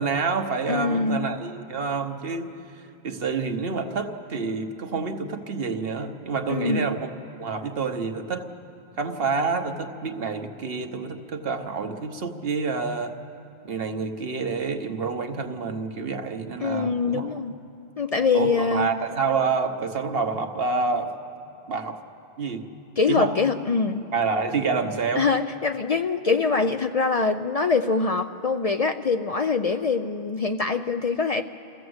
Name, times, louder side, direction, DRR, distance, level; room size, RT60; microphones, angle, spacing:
voice 1, 0.0-2.5 3.0-7.1 7.4-8.5 9.0-13.1 13.6-17.3 18.3-21.1 21.7-22.0 22.4-22.7 23.1-23.3 24.1-25.3, right 4 dB, 65° right, 6 dB, 1.2 m, -28 dB
voice 2, 0.7-1.2 6.5-6.9 16.6-17.5 18.0-18.9 23.0-24.0 25.2-31.4, left 4 dB, 45° left, 7 dB, 0.5 m, -24 dB
25.0 x 15.5 x 7.9 m, 2.7 s
omnidirectional pair, 1.1 m